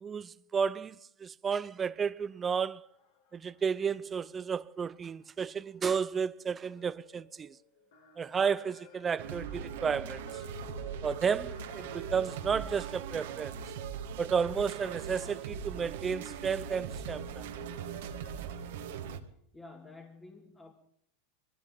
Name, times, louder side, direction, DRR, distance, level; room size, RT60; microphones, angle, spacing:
voice 1, 0.0-2.8 3.3-7.6 8.2-10.2 11.0-13.6 14.2-17.4, right 6 dB, 25° right, 0.6 m, -32 dB
sound 1, 1.7-19.2, left 5 dB, 75° left, 4.7 m, -58 dB
sound 2, 9.2-19.2, right 7 dB, 70° right, 1.7 m, -40 dB
voice 2, 19.5-20.7, left 3 dB, 20° left, 2.3 m, -50 dB
23.0 x 16.5 x 3.9 m
hypercardioid pair, 110°, 0 cm